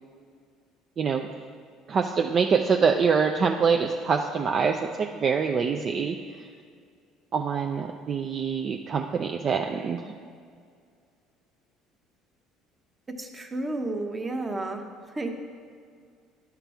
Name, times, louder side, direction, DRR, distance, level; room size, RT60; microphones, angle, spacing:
voice 1, 1.0-1.3 1.9-6.2 7.3-10.0, right 6 dB, 45° right, 3 dB, 0.4 m, -25 dB
voice 2, 13.2-14.8 15.1-15.3, right 2 dB, 25° right, 4 dB, 0.9 m, -31 dB
10.0 x 5.8 x 3.5 m, 2.2 s
supercardioid pair, 75°, 0 cm